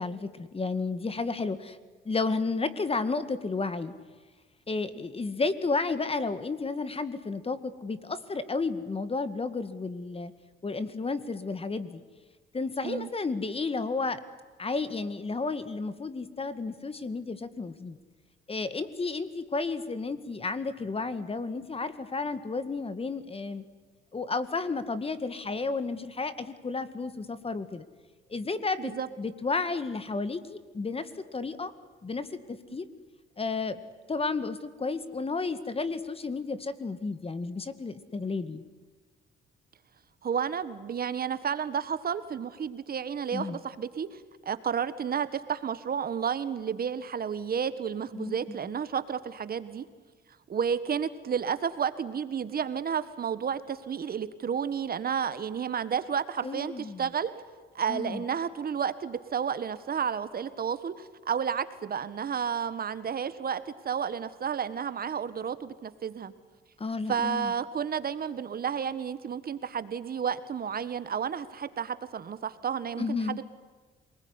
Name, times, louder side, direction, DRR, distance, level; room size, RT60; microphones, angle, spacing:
voice 1, 0.0-1.8 2.1-3.9 4.7-10.3 10.6-12.0 12.5-14.2 14.6-18.0 18.5-23.6 24.1-27.8 28.3-31.7 32.0-32.9 33.4-33.8 34.1-38.6 43.3-43.6 48.1-48.4 56.4-57.0 57.9-58.2 66.8-67.5 73.0-73.4, left 3 dB, 30° left, 13 dB, 2.0 m, -32 dB
voice 2, 40.2-49.8 50.5-57.3 57.7-66.3 67.1-73.4, right 7 dB, 50° right, 13 dB, 1.7 m, -31 dB
27.0 x 20.0 x 9.8 m, 1.4 s
cardioid pair, 90°, 20 cm